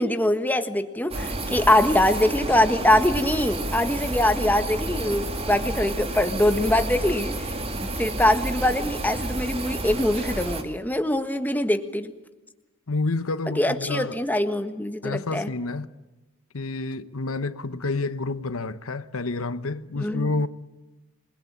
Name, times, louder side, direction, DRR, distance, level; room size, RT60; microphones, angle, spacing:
voice 1, 0.0-7.5 8.0-12.1 13.6-15.5 20.0-20.4, left 1 dB, 10° left, 1.5 m, -23 dB
sound 1, 1.1-10.6, right 2 dB, 30° right, 2.8 m, -30 dB
voice 2, 12.9-14.2 15.0-15.9 16.5-20.5, left 3 dB, 85° left, 1.1 m, -29 dB
28.0 x 21.5 x 8.8 m
head